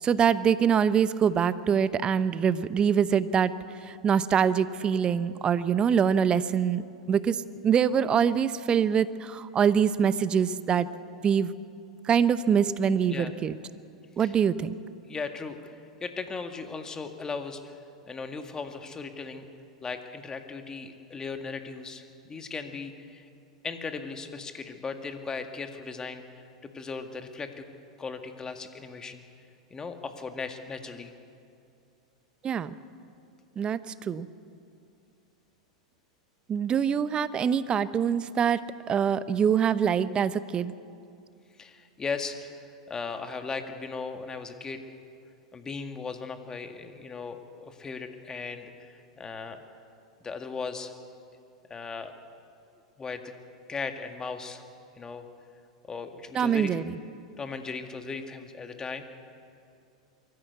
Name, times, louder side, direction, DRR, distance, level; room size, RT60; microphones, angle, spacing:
voice 1, 0.0-3.5 3.8-6.8 7.1-10.9 11.2-11.5 12.0-13.6 14.2-14.8 32.4-32.7 33.6-34.3 36.5-40.7 56.3-57.0, right 7 dB, 30° right, 15 dB, 0.8 m, -24 dB
voice 2, 15.1-17.7 18.1-19.5 19.8-23.3 23.6-26.4 26.7-27.6 28.0-29.2 29.7-31.1 41.6-42.6 42.9-44.8 45.5-49.6 50.2-50.9 51.7-52.1 53.0-53.3 53.7-54.6 55.0-55.3 55.9-56.7 57.4-59.0, left 4 dB, 20° left, 6 dB, 1.9 m, -37 dB
23.0 x 14.5 x 8.2 m, 2.5 s
hypercardioid pair, 95°, 3 cm